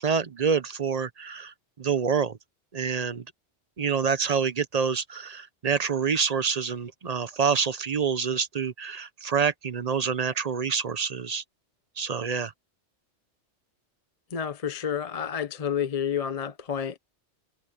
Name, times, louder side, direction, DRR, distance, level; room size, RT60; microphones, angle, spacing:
voice 1, 0.0-2.4 2.7-3.2 3.8-11.4 12.0-12.5, right 6 dB, 40° right, 0.7 m, -27 dB
voice 2, 14.3-17.0, left 8 dB, 35° left, 0.7 m, -30 dB
omnidirectional pair, 1.2 m